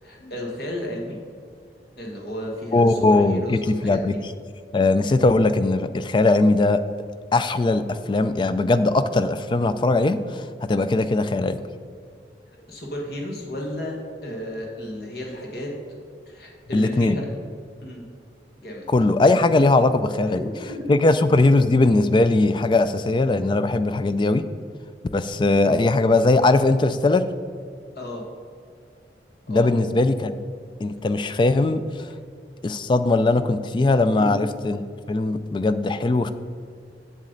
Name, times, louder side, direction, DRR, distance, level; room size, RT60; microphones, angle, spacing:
voice 1, 0.0-1.2 2.0-4.2 12.5-15.7 16.3-17.3 17.8-18.0 18.6-18.9 20.4-21.0 28.0-28.2 29.5-29.8 34.1-34.4, left 1 dB, 60° left, -1 dB, 1.5 m, -33 dB
voice 2, 2.7-4.1 4.7-6.8 7.3-11.6 16.7-17.2 18.9-20.5 20.9-24.4 25.1-27.3 29.5-30.4 30.8-32.1 32.6-34.8 35.1-36.3, left 2 dB, 25° left, 12 dB, 0.3 m, -20 dB
7.4 x 7.3 x 3.9 m, 2.3 s
head